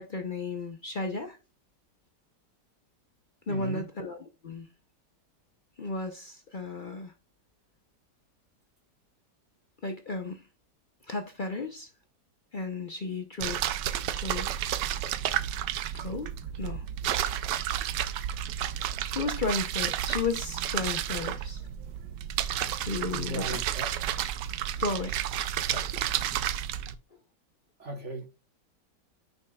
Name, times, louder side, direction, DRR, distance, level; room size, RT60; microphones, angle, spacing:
voice 1, 0.0-1.4 3.5-4.7 5.8-7.1 9.8-10.5 11.0-11.9 12.5-13.6 14.1-14.5 15.9-16.8 19.1-21.7 22.8-23.6 24.8-25.3, left 3 dB, 55° left, 0.5 m, -34 dB
voice 2, 3.5-3.8 23.1-23.9 25.7-25.9 27.8-28.3, right 1 dB, 45° right, 1.3 m, -36 dB
sound 1, 13.4-26.9, right 11 dB, 80° right, 1.2 m, -31 dB
9.5 x 5.4 x 2.3 m
omnidirectional pair, 1.9 m